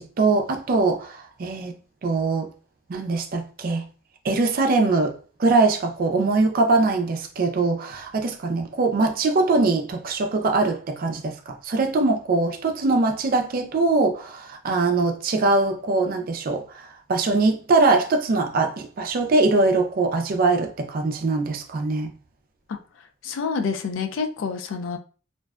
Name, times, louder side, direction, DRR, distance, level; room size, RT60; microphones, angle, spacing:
voice 1, 0.0-1.7 2.0-2.5 2.9-3.8 4.2-22.1, right 3 dB, 50° right, 0.4 m, -22 dB
voice 2, 23.2-25.0, left 5 dB, 90° left, 0.4 m, -27 dB
2.5 x 2.1 x 2.3 m
head